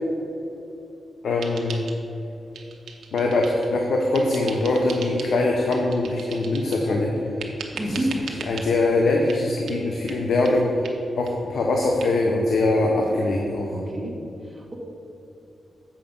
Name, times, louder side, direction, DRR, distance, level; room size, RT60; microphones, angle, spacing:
voice 1, 1.2-1.8 3.1-7.1 7.9-8.0 8.5-10.7 11.2-13.7, left 2 dB, 75° left, 0 dB, 0.8 m, -22 dB
sound 1, 1.4-2.3 2.5-3.7 4.1-5.3 5.7-6.9 7.4-8.7 9.3-9.4 9.7-9.8 10.1-10.2 10.4-10.5 10.8-11.0 11.2-11.3 11.6-11.7 12.0-12.1, right 5 dB, 85° right, 0.8 m, -39 dB
voice 2, 7.7-8.2 12.7-13.2 13.7-14.2 14.4-14.7, right 1 dB, 20° right, -2 dB, 1.5 m, -30 dB
7.5 x 5.8 x 5.3 m, 2.9 s
wide cardioid pair, 110°, 0 cm